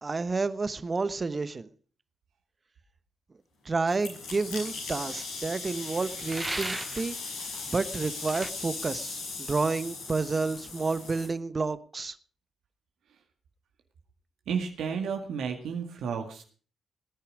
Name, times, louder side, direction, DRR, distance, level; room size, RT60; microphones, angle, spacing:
voice 1, 0.0-1.7 3.6-7.2 7.7-12.2, right 3 dB, 35° right, 1.1 m, -30 dB
sound 1, 3.9-11.3, left 3 dB, 80° left, 6.5 m, -38 dB
sound 2, 6.3-7.1 8.3-8.5, right 2 dB, 20° right, 0.6 m, -35 dB
voice 2, 14.5-16.4, right 6 dB, 70° right, 1.9 m, -32 dB
19.0 x 10.5 x 5.0 m
hypercardioid pair, 45°, 0 cm